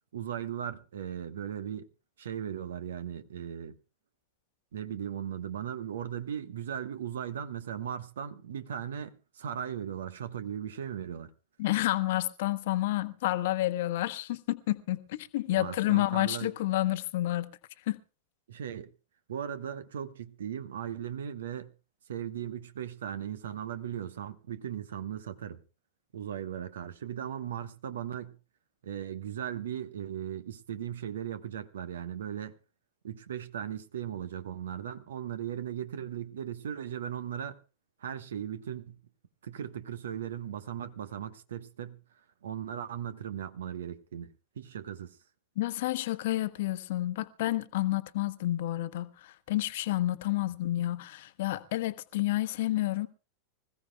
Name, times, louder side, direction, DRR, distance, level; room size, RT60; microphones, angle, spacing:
voice 1, 0.1-1.9 2.2-3.8 4.7-11.3 15.5-16.5 18.5-18.9 19.3-21.7 22.1-25.6 26.1-28.4 28.8-32.6 33.0-37.6 38.0-39.0 39.4-42.0 42.4-45.2, right 9 dB, 65° right, 1.2 m, -37 dB
voice 2, 11.6-17.6 17.9-18.0 45.6-53.1, left 16 dB, 55° left, 1.1 m, -30 dB
25.5 x 15.5 x 2.3 m
figure-of-eight pair, 90°, 0 cm